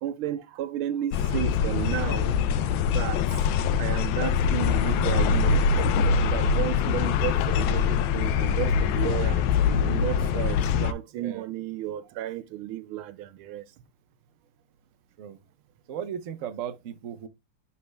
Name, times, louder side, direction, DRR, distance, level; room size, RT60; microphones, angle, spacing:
voice 1, 0.0-2.3 2.8-3.2 3.8-13.6, right 12 dB, 85° right, 1.5 m, -33 dB
sound 1, 1.1-10.9, left 6 dB, 75° left, 1.2 m, -23 dB
voice 2, 15.9-17.3, right 8 dB, 65° right, 0.7 m, -36 dB
11.5 x 4.2 x 2.2 m
omnidirectional pair, 2.3 m